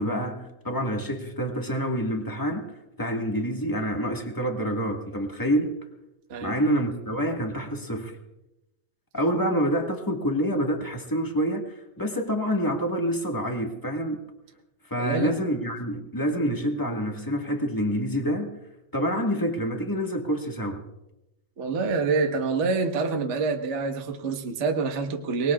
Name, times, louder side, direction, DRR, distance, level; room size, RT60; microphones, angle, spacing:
voice 1, 0.0-2.6 3.0-5.7 6.4-8.1 9.1-11.6 12.0-14.2 14.8-18.6 18.9-20.8, equal, 15° left, 2 dB, 0.7 m, -27 dB
voice 2, 6.3-6.6 15.0-15.3 21.6-25.5, right 4 dB, 60° right, 3 dB, 0.7 m, -26 dB
24.0 x 20.0 x 2.4 m, 0.93 s
omnidirectional pair, 3.3 m